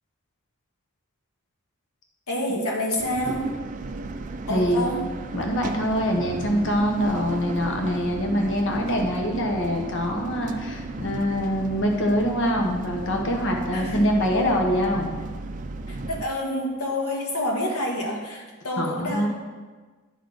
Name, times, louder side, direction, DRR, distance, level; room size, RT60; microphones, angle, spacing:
voice 1, 2.3-3.6 4.5-5.1 13.7-14.1 15.9-19.3, left 1 dB, 85° left, -1 dB, 1.5 m, -28 dB
sound 1, 3.0-16.2, right 3 dB, 35° right, 0.4 m, -34 dB
voice 2, 4.5-4.8 5.3-15.1 18.8-19.3, equal, 55° left, 2 dB, 0.9 m, -24 dB
11.0 x 4.1 x 4.8 m, 1.3 s
head